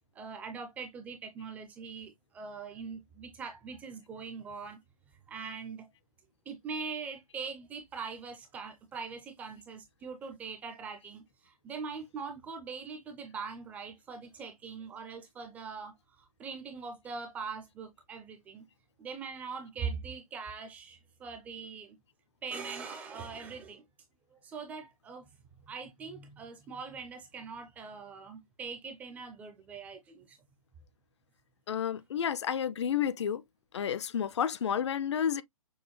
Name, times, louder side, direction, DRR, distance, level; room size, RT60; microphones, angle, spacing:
voice 1, 0.1-4.8 5.3-5.9 6.5-18.7 19.0-22.0 22.4-23.8 24.3-25.3 25.7-30.4, right 5 dB, 10° right, 0.4 m, -42 dB
voice 2, 31.7-33.4 33.7-35.4, left 8 dB, 50° left, 0.4 m, -31 dB
6.2 x 2.1 x 3.0 m
figure-of-eight pair, 140°, 19 cm